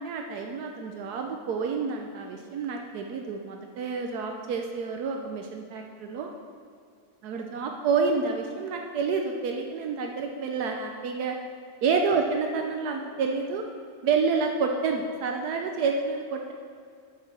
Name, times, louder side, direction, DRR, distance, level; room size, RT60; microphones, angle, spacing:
voice 1, 0.0-6.3 7.2-11.4 11.8-13.6 14.0-16.5, right 5 dB, 85° right, 2 dB, 1.3 m, -29 dB
7.3 x 7.0 x 7.2 m, 2.3 s
omnidirectional pair, 1.6 m